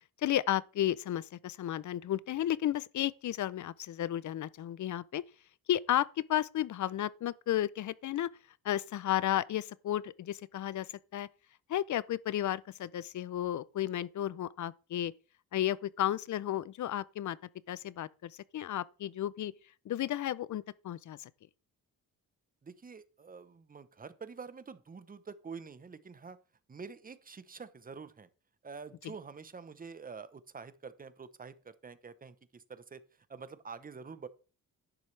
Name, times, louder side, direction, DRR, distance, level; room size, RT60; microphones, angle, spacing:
voice 1, 0.2-5.2 5.7-8.3 8.6-10.9 11.1-11.3 11.7-15.1 15.5-17.4 17.7-19.5 19.9-21.3, left 12 dB, 55° left, 0.5 m, -33 dB
voice 2, 22.6-26.4 26.7-28.3 28.6-33.0 33.3-34.3, right 5 dB, 25° right, 0.8 m, -47 dB
11.0 x 10.0 x 3.3 m
cardioid pair, 130°, 35 cm